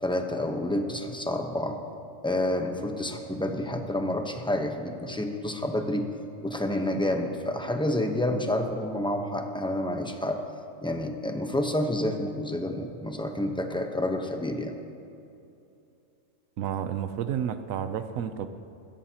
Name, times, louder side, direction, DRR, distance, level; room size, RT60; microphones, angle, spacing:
voice 1, 0.0-1.8 2.2-6.1 6.4-10.4 10.8-14.7, left 1 dB, 5° left, 4 dB, 0.8 m, -29 dB
voice 2, 16.6-18.5, right 9 dB, 85° right, 10 dB, 1.1 m, -31 dB
21.5 x 15.5 x 2.9 m, 2.7 s
omnidirectional pair, 1.4 m